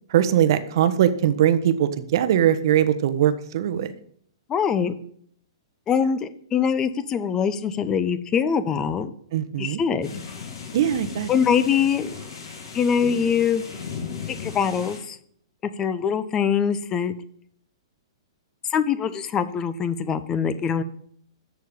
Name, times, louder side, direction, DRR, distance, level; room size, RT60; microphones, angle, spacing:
voice 1, 0.1-3.9 9.3-9.8 10.7-11.3, right 10 dB, 55° right, 11 dB, 1.1 m, -21 dB
voice 2, 4.5-4.9 5.9-9.1 9.6-10.2 11.3-12.1 12.7-13.6 14.4-15.2 15.8-17.1 18.7-20.8, left 7 dB, 20° left, 14 dB, 0.8 m, -23 dB
sound 1, 10.0-15.0, left 6 dB, 55° left, 4.7 m, -36 dB
13.5 x 4.6 x 8.7 m, 0.64 s
figure-of-eight pair, 115°, 3 cm